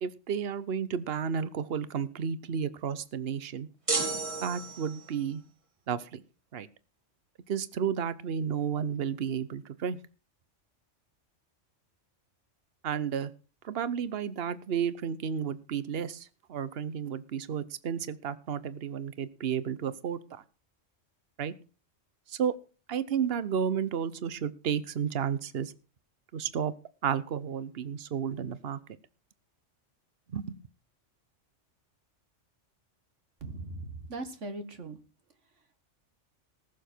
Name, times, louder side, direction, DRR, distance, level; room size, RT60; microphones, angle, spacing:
voice 1, 0.0-3.7 4.4-5.4 5.9-6.2 6.5-6.7 7.5-10.0 12.8-13.3 13.6-20.4 21.4-21.5 22.3-22.5 22.9-25.7 26.3-26.7 27.0-28.8 30.3-30.4, right 7 dB, 55° right, 16 dB, 1.1 m, -32 dB
sound 1, 3.9-5.2, right 3 dB, 25° right, 1.7 m, -32 dB
voice 2, 33.4-35.0, right 2 dB, 75° right, 9 dB, 2.0 m, -39 dB
19.5 x 7.1 x 4.5 m, 0.35 s
omnidirectional pair, 1.2 m